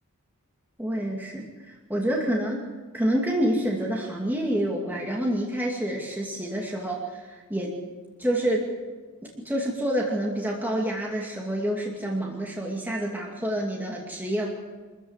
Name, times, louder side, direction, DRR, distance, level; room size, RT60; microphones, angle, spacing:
voice 1, 0.8-2.6 2.9-7.7 8.2-8.7 9.4-14.5, right 1 dB, 10° right, -2 dB, 2.4 m, -28 dB
25.0 x 14.5 x 8.2 m, 1.3 s
head